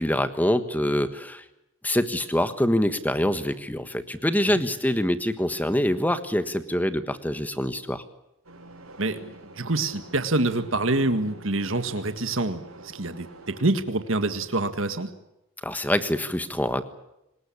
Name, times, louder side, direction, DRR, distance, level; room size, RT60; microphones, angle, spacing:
voice 1, 0.0-1.4 1.8-8.0 15.6-16.9, left 1 dB, 10° left, 11 dB, 1.4 m, -25 dB
sound 1, 8.4-13.6, right 2 dB, 80° right, 6.9 m, -47 dB
voice 2, 9.0-15.1, right 2 dB, 60° right, 9 dB, 1.8 m, -26 dB
25.0 x 20.0 x 8.6 m, 0.89 s
head